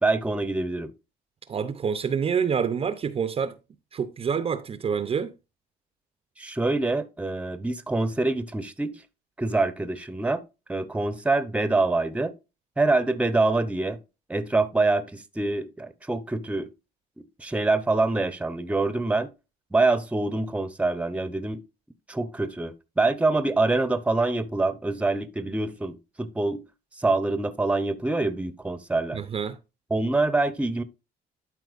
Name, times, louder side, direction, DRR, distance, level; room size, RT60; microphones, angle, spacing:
voice 1, 0.0-0.9 6.4-9.0 9.4-10.4 10.7-12.3 12.8-14.0 14.3-16.7 17.4-19.3 19.7-21.6 22.1-26.6 27.0-29.2 29.9-30.8, right 2 dB, 10° right, 0.8 m, -25 dB
voice 2, 1.5-3.6 3.9-5.3 29.1-29.6, right 6 dB, 35° right, 0.7 m, -27 dB
12.0 x 4.4 x 2.5 m
cardioid pair, 110°, 17 cm